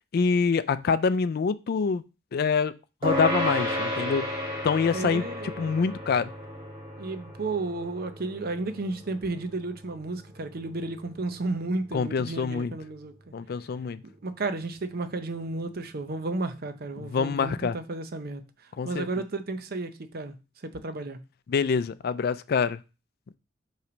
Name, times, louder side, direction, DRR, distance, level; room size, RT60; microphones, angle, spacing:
voice 1, 0.1-2.0 2.3-2.7 3.0-4.3 4.6-5.2 5.6-6.3 11.9-12.7 13.3-14.0 17.0-17.8 18.8-19.1 21.5-22.8, left 5 dB, 55° left, 0.4 m, -25 dB
sound 1, 3.0-12.7, left 1 dB, 30° right, 1.6 m, -34 dB
voice 2, 4.9-5.7 7.0-13.1 14.0-18.4 18.8-20.3 20.6-21.2, right 3 dB, 55° right, 0.6 m, -33 dB
5.7 x 3.2 x 5.0 m
head